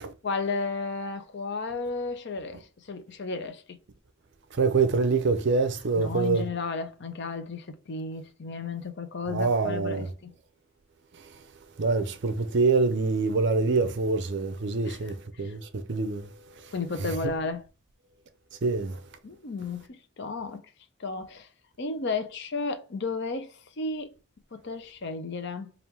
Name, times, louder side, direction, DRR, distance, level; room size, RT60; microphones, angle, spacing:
voice 1, 0.2-3.8 6.0-10.3 14.9-15.1 15.4-15.5 16.7-17.7 19.2-20.6 21.0-21.5 21.8-24.1 24.5-25.7, left 4 dB, 55° left, 0.6 m, -33 dB
voice 2, 4.6-6.4 9.3-10.1 11.8-15.6 15.9-16.3 17.0-17.1 18.6-19.0, right 4 dB, 55° right, 0.5 m, -25 dB
3.5 x 2.5 x 4.4 m
head